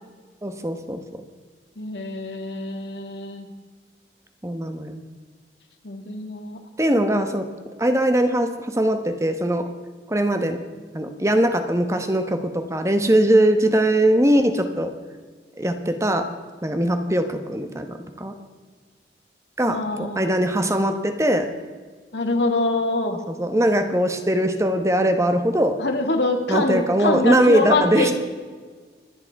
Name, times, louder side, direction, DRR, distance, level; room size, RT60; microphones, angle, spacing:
voice 1, 0.4-1.2 4.4-5.0 6.8-7.5 7.8-9.7 10.1-10.6 10.9-14.9 15.6-16.3 16.6-18.3 19.6-21.5 23.3-25.8 26.5-28.1, right 1 dB, 15° right, 7 dB, 1.1 m, -21 dB
voice 2, 1.8-3.5 5.8-6.6 19.6-20.3 22.1-23.2 25.8-28.1, left 2 dB, 80° left, 4 dB, 2.1 m, -24 dB
25.5 x 9.8 x 4.7 m, 1.5 s
head